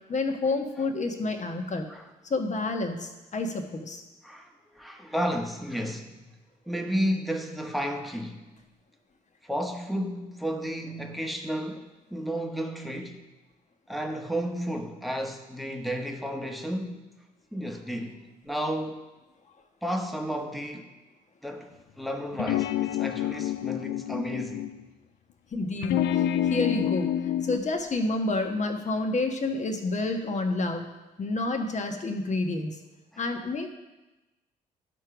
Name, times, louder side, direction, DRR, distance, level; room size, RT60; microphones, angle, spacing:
voice 1, 0.1-1.9 2.2-4.0 25.5-26.2 26.5-27.1 27.4-30.9 31.2-32.8 33.2-33.7, left 2 dB, 35° left, 1.3 m, -29 dB
voice 2, 4.7-6.2 6.7-8.4 9.4-13.2 13.9-17.0 17.5-19.0 19.8-20.9 21.4-24.7 33.1-33.2, equal, ahead, 1.3 m, -32 dB
sound 1, 22.3-24.8 25.8-27.6, left 11 dB, 55° left, 0.5 m, -28 dB
12.0 x 4.5 x 5.0 m
figure-of-eight pair, 45°, 20 cm